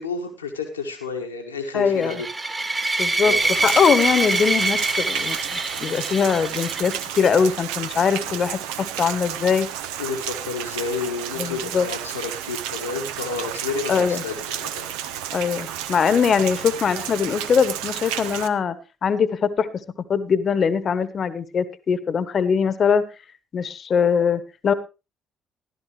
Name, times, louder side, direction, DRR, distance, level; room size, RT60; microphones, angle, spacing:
voice 1, 0.0-2.3 3.2-3.4 10.0-14.9, left 4 dB, 90° left, 2 dB, 1.4 m, -30 dB
voice 2, 1.7-2.1 3.0-3.3 3.6-9.7 11.4-11.9 13.9-14.2 15.3-18.8 19.0-19.7 20.1-23.0 23.5-24.7, left 6 dB, 45° left, 14 dB, 1.1 m, -21 dB
sound 1, 2.0-7.3, right 2 dB, 30° right, 2.2 m, -25 dB
Rain, 3.4-18.5, right 10 dB, 75° right, 0.6 m, -32 dB
14.5 x 12.0 x 3.2 m, 0.29 s
figure-of-eight pair, 50°, 0 cm